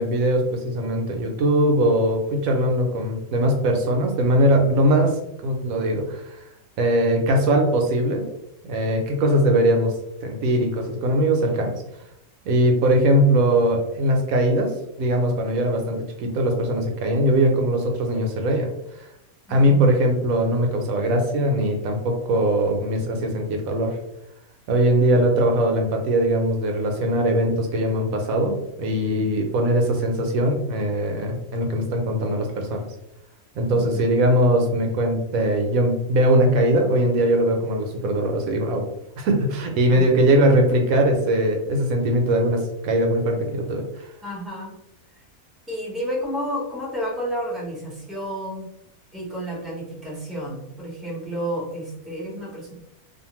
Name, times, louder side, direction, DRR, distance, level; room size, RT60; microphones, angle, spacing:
voice 1, 0.0-5.2 5.4-6.2 6.8-8.2 8.6-9.9 10.2-11.7 12.5-14.7 15.0-18.7 19.0-19.1 19.5-24.0 24.7-32.8 33.5-38.8 39.2-44.1, right 1 dB, 75° right, 2 dB, 1.0 m, -21 dB
voice 2, 19.5-19.9 33.7-34.1 44.2-44.7 45.7-48.7 49.1-52.7, equal, ahead, -5 dB, 0.5 m, -31 dB
2.5 x 2.5 x 2.8 m, 0.82 s
omnidirectional pair, 1.6 m